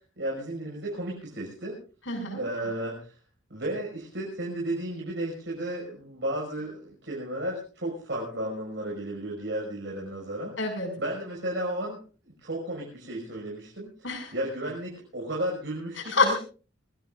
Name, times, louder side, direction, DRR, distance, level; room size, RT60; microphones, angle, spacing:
voice 1, 0.2-1.8 2.3-3.1 3.5-10.6 11.0-12.0 12.2-16.4, right 1 dB, 65° right, -3 dB, 6.2 m, -33 dB
voice 2, 2.1-2.4 10.6-10.9 14.0-14.3 16.1-16.4, left 3 dB, 80° left, 5 dB, 6.6 m, -26 dB
25.0 x 19.5 x 2.6 m, 0.38 s
head